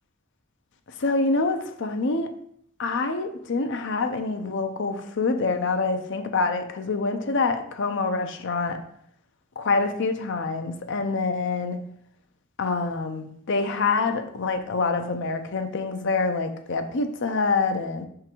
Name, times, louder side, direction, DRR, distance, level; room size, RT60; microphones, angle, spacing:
voice 1, 1.0-2.3 2.8-8.8 9.6-11.8 12.6-18.1, left 3 dB, 60° left, 7 dB, 0.6 m, -26 dB
5.8 x 3.8 x 4.4 m, 0.69 s
head